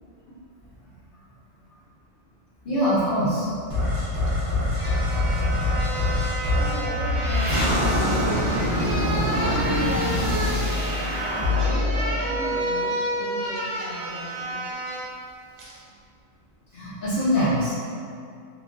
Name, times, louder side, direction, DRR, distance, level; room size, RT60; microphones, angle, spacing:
voice 1, 2.6-3.5 16.7-17.7, equal, 55° left, -11 dB, 0.6 m, -23 dB
sound 1, 3.7-13.0, left 1 dB, 30° right, 0.7 m, -24 dB
sound 2, 4.3-4.4 4.7-15.1 15.6-15.8, right 1 dB, 80° right, 1.0 m, -31 dB
voice 2, 6.0-14.6, right 1 dB, 55° right, -10 dB, 0.4 m, -36 dB
3.0 x 2.3 x 2.4 m, 2.4 s
omnidirectional pair, 1.4 m